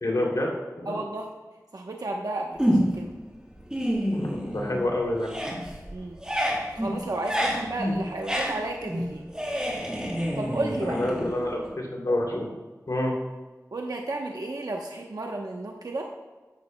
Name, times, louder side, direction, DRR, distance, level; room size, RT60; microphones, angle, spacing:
voice 1, 0.0-1.0 4.1-5.3 10.8-12.5 12.9-13.1, left 1 dB, 75° left, -1 dB, 2.9 m, -28 dB
voice 2, 0.8-1.3 1.7-3.1 5.9-6.2 6.8-9.2 10.4-11.0 13.7-16.1, right 2 dB, 80° right, 0 dB, 1.0 m, -32 dB
sound 1, 2.6-3.1 3.5-4.9 5.2-11.7, equal, 10° right, 3.7 m, -28 dB
13.5 x 12.5 x 2.3 m, 1.3 s
wide cardioid pair, 50°, 6 cm